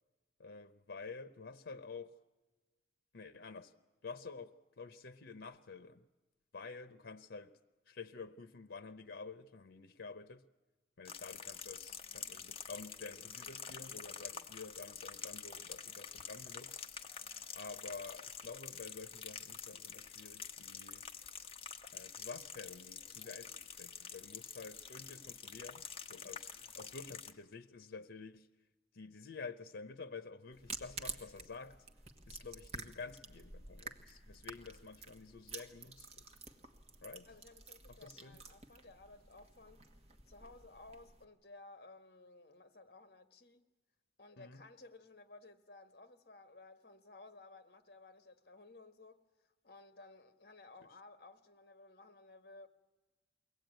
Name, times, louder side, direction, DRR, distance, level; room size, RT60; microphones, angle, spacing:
voice 1, 0.4-2.2 3.1-3.7 4.0-6.0 6.5-7.5 7.9-10.4 11.0-16.8 17.5-21.1 21.9-28.5 28.9-31.8 32.3-36.2 37.0-37.3 37.9-38.4 44.4-44.6, left 4 dB, 90° left, 0.8 m, -50 dB
sound 1, 11.0-27.3, left 7 dB, 30° left, 1.1 m, -48 dB
sound 2, 30.5-41.2, right 4 dB, 35° right, 1.4 m, -50 dB
voice 2, 37.2-39.8 40.2-43.7 44.2-49.2 49.6-52.7, left 2 dB, 55° left, 1.7 m, -57 dB
23.0 x 17.5 x 9.1 m
head